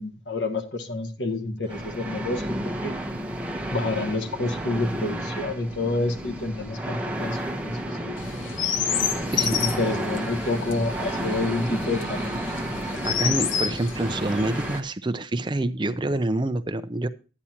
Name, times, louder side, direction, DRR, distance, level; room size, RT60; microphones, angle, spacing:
voice 1, 0.0-2.9 3.7-8.1 9.4-12.4, left 2 dB, 70° left, 1.4 m, -28 dB
sound 1, 1.7-14.8, right 1 dB, 5° right, 1.0 m, -31 dB
Chirp tweet, 8.2-14.8, left 8 dB, 85° left, 0.8 m, -30 dB
voice 2, 13.0-17.1, right 2 dB, 25° right, 0.5 m, -27 dB
12.5 x 9.8 x 2.9 m
head